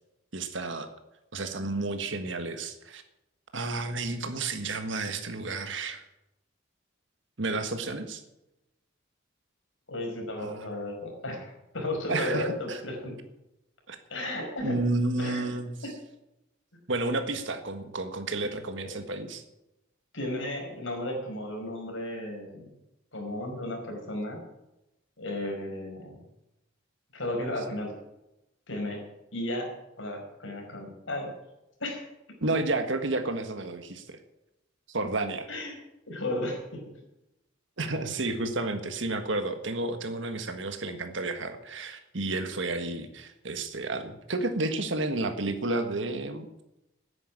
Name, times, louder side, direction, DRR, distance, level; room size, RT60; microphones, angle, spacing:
voice 1, 0.3-0.9 1.3-3.0 3.5-6.0 7.4-8.2 10.4-10.7 12.1-12.8 13.9-14.0 14.6-15.7 16.9-19.4 32.4-34.2 34.9-35.5 37.8-46.5, right 2 dB, 70° right, 7 dB, 1.5 m, -31 dB
voice 2, 9.9-13.2 14.1-14.7 15.2-15.5 15.8-15.9 18.8-18.9 20.1-22.7 23.1-24.4 25.2-26.2 27.1-27.9 28.7-29.0 29.3-29.7 30.0-31.3 31.8-32.0 35.5-35.7 36.1-36.8, left 1 dB, 80° left, 2 dB, 5.1 m, -34 dB
10.0 x 9.7 x 9.9 m, 0.90 s
head